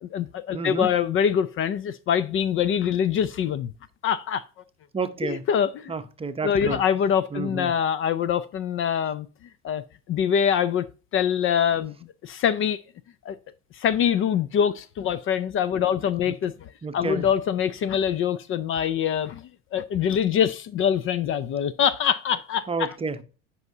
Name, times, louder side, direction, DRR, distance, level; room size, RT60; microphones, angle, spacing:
voice 1, 0.0-3.7 4.0-4.4 5.2-5.9 6.4-9.3 9.6-9.8 10.1-10.8 11.1-12.0 12.2-12.8 13.3-13.4 13.7-22.9, left 8 dB, 40° left, 0.5 m, -24 dB
voice 2, 0.5-0.9 4.9-5.4 5.9-6.8 7.3-7.7 16.3-16.4 16.8-17.2 22.7-23.2, right 4 dB, 20° right, 0.7 m, -30 dB
10.5 x 5.6 x 2.7 m
supercardioid pair, 95°, 31 cm